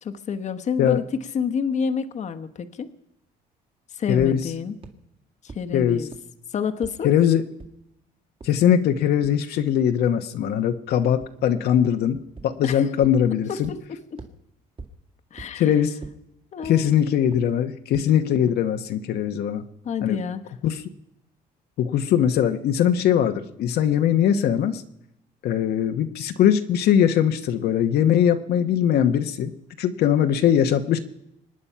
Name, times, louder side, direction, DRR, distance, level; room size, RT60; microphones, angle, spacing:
voice 1, 0.0-1.0 1.3-2.9 3.9-4.7 5.4-6.1 6.5-7.1 12.6-12.9 13.5-14.0 15.3-15.7 16.5-17.0 19.8-20.4, left 6 dB, 45° left, 8 dB, 1.1 m, -28 dB
voice 2, 4.1-4.5 5.7-6.1 7.0-7.5 8.4-13.7 15.5-16.0 16.6-19.6 20.0-20.2 20.6-20.8 21.8-24.8 25.4-29.5 29.8-31.0, left 9 dB, 70° left, 7 dB, 1.0 m, -21 dB
sound 1, 4.2-4.3 4.8-4.9 5.5-5.6 6.1-6.2 6.8-6.9 7.6-7.7 8.4-8.5 9.2-9.3 11.2-11.3 12.4-12.5 13.0-13.1 13.6-13.7 14.2-14.3 14.8-14.9 15.4-15.5 16.0-16.1 16.6-16.7 17.3-17.4 17.9-18.0, right 4 dB, 30° right, 2.0 m, -39 dB
25.0 x 9.7 x 5.7 m, 0.81 s
cardioid pair, 110°, 17 cm